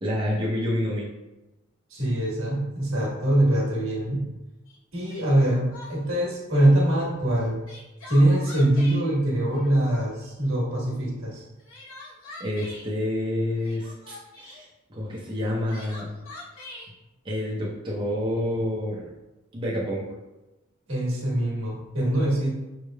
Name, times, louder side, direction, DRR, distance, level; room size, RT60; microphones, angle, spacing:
voice 1, 0.0-1.1 12.4-16.2 17.2-19.1 19.5-20.1, left 1 dB, 25° right, -6 dB, 0.7 m, -28 dB
voice 2, 1.9-4.3 4.9-7.6 8.1-11.4 20.9-22.5, right 1 dB, 75° right, -4 dB, 1.4 m, -23 dB
Crying sobbing, 4.7-4.8 5.1-6.2 7.4-9.0 9.5-10.3 11.4-12.9 13.6-14.6 15.4-16.9, left 2 dB, 80° left, 1.1 m, -44 dB
5.5 x 3.2 x 2.3 m, 1.0 s
head